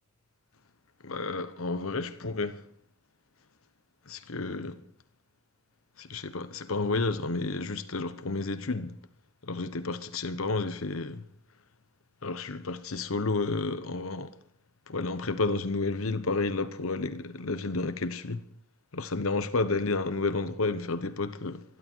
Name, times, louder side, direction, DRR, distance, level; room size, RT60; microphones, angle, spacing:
voice 1, 1.0-2.6 4.1-4.8 6.0-8.9 9.4-11.2 12.2-14.4 14.9-18.4 18.9-21.6, left 3 dB, 70° left, 1.1 m, -31 dB
26.0 x 12.0 x 4.6 m
head